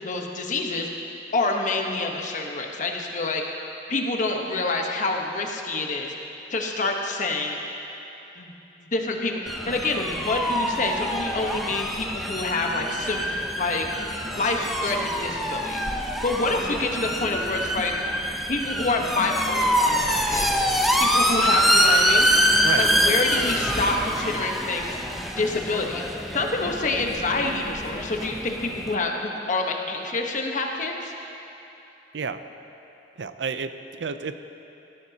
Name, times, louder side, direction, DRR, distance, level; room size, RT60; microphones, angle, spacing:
voice 1, 0.0-0.9 1.3-3.4 3.9-6.1 6.5-7.6 8.4-8.5 8.9-9.4 9.7-13.8 14.2-15.8 16.2-17.9 18.5-20.5 21.0-22.3 22.7-25.0 25.4-26.0 26.3-31.1, left 3 dB, 45° left, 1 dB, 1.1 m, -27 dB
sound 1, 9.5-28.9, equal, ahead, 0.7 m, -25 dB
voice 2, 33.2-33.7 34.0-34.5, right 5 dB, 80° right, 10 dB, 0.5 m, -30 dB
17.5 x 14.0 x 2.9 m, 2.9 s
head